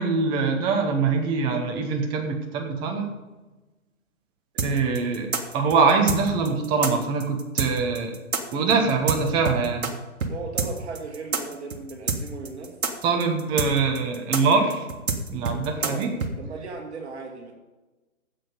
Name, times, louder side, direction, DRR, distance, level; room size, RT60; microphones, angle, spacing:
voice 1, 0.0-3.1 4.6-5.3 5.5-8.2 8.5-9.9 13.0-14.9 15.3-16.1, right 4 dB, 10° right, 4 dB, 0.7 m, -23 dB
sound 1, 4.6-9.9 10.2-10.3 10.6-16.3, right 5 dB, 70° right, 1.8 m, -27 dB
voice 2, 10.3-12.8 15.8-16.1 16.4-17.5, right 4 dB, 50° right, 1 dB, 2.6 m, -37 dB
12.5 x 8.4 x 5.3 m, 1.1 s
figure-of-eight pair, 140°, 43 cm